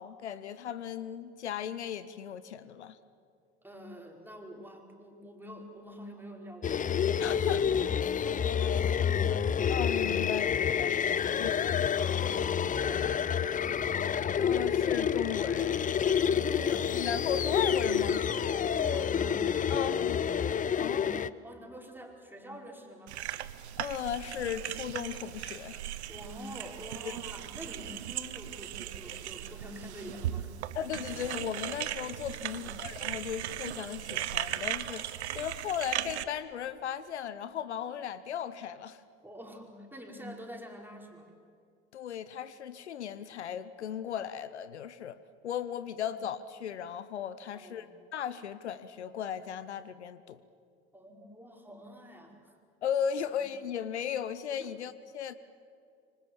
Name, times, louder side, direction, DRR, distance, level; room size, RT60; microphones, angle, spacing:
voice 1, 0.0-3.0 7.2-7.7 9.7-11.0 11.4-11.5 14.4-15.8 16.7-18.2 19.7-20.2 20.8-21.1 23.8-25.8 27.0-27.1 30.7-39.0 41.9-45.2 45.4-50.4 52.8-55.3, left 9 dB, 80° left, 15 dB, 0.8 m, -36 dB
voice 2, 3.6-7.9 8.2-9.6 11.2-13.9 16.0-17.6 18.4-19.7 20.8-23.2 26.1-30.5 32.4-32.7 39.2-41.3 46.0-46.1 47.4-47.9 50.9-52.6 54.6-54.7, equal, 5° right, 1 dB, 5.0 m, -47 dB
sound 1, 6.6-21.3, left 8 dB, 25° left, 0.6 m, -28 dB
sound 2, 23.1-36.2, right 12 dB, 75° right, 0.9 m, -38 dB
26.5 x 24.5 x 7.4 m, 2.4 s
figure-of-eight pair, 60°, 33 cm